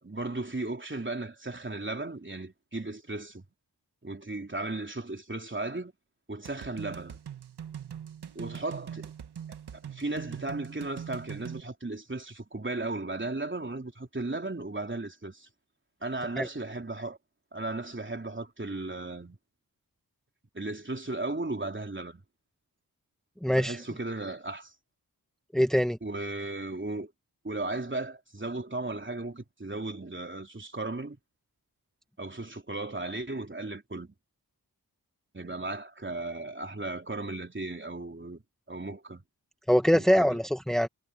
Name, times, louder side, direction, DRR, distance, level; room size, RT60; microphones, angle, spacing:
voice 1, 0.0-3.4 4.0-5.9 6.3-7.2 8.4-9.1 9.7-15.5 16.0-17.2 17.5-19.4 20.5-22.2 23.6-24.7 26.0-27.1 27.4-31.2 32.2-34.1 35.3-38.4 38.7-39.2 39.9-40.4, right 2 dB, 30° right, 3.6 m, -36 dB
sound 1, 6.4-11.6, right 8 dB, 85° right, 1.4 m, -42 dB
voice 2, 23.4-23.8 25.5-26.0 39.7-40.9, equal, ahead, 1.7 m, -23 dB
cardioid pair, 40°, 39 cm